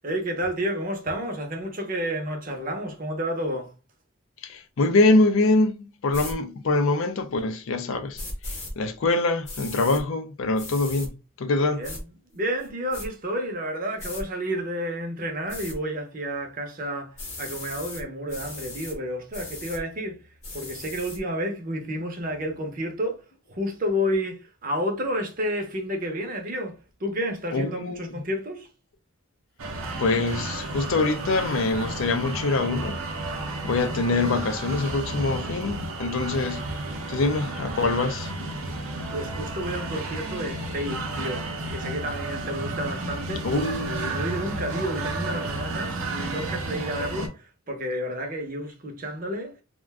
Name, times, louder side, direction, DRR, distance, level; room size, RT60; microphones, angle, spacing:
voice 1, 0.0-3.7 11.7-12.0 12.3-20.2 20.5-23.2 23.5-28.7 39.1-43.5 43.8-49.5, equal, 40° right, 0.6 m, -30 dB
voice 2, 4.4-8.2 8.8-11.1 11.4-11.8 27.5-28.1 30.0-33.0 33.6-36.6 37.1-38.3 43.4-44.2, left 3 dB, 70° left, 0.4 m, -24 dB
sound 1, 6.1-6.3 8.1-8.7 9.4-10.0 10.6-11.1 11.8-12.0 12.6-13.1 14.0-14.2 15.5-15.8 17.2-18.0 18.3-18.9 19.3-19.8 20.4-21.2, left 2 dB, 30° left, 0.8 m, -37 dB
sound 2, 29.6-47.3, right 2 dB, 75° right, 0.6 m, -32 dB
2.4 x 2.2 x 3.3 m
head